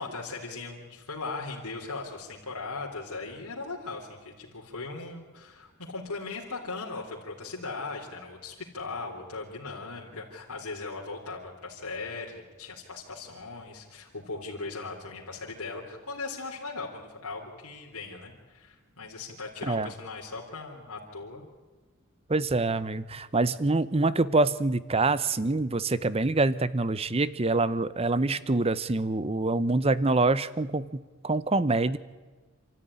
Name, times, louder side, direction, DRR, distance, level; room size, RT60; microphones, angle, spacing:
voice 1, 0.0-21.5, left 3 dB, 90° left, -2 dB, 3.7 m, -38 dB
voice 2, 22.3-32.0, right 2 dB, 25° right, 16 dB, 0.7 m, -25 dB
28.5 x 13.5 x 10.0 m, 1.3 s
head